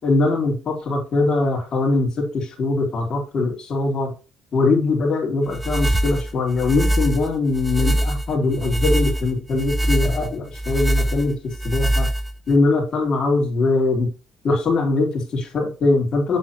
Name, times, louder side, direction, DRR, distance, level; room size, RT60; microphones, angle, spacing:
voice 1, 0.0-4.1 4.5-11.3 11.6-12.1 12.5-14.1 14.4-16.4, left 3 dB, 40° left, 1 dB, 3.0 m, -21 dB
sound 1, 5.5-12.6, right 1 dB, 5° right, 0.7 m, -23 dB
7.6 x 7.3 x 2.9 m, 0.32 s
cardioid pair, 140°, 2 cm